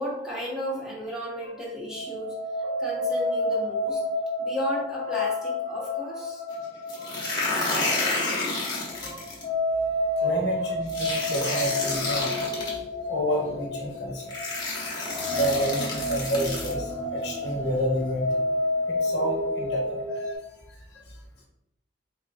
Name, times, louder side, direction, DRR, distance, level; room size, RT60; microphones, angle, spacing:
voice 1, 0.0-4.0 4.4-6.4 7.0-7.2 7.9-8.5 9.0-9.3 10.2-10.8, equal, 5° right, -6 dB, 1.2 m, -35 dB
sound 1, 1.9-20.4, left 1 dB, 45° left, 0.9 m, -30 dB
sound 2, 6.9-9.4 10.9-12.7 13.7-13.8 14.3-16.7, left 2 dB, 25° left, 1.0 m, -29 dB
voice 2, 10.2-12.4 13.1-14.3 15.3-18.2 18.9-20.4, equal, 70° left, -2 dB, 1.0 m, -29 dB
4.3 x 3.0 x 2.5 m, 0.85 s
head